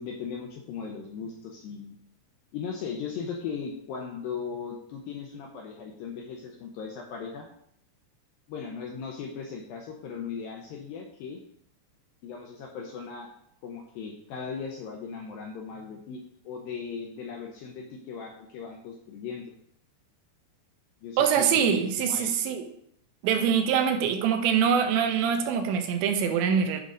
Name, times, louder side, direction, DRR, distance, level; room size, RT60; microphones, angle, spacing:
voice 1, 0.0-2.0 2.5-7.5 8.5-11.4 12.2-13.3 13.6-19.5 21.0-22.4, left 6 dB, 75° left, 1 dB, 2.1 m, -38 dB
voice 2, 21.2-22.6 23.2-26.8, right 7 dB, 85° right, 5 dB, 3.2 m, -24 dB
10.5 x 4.0 x 5.0 m, 0.69 s
omnidirectional pair, 5.0 m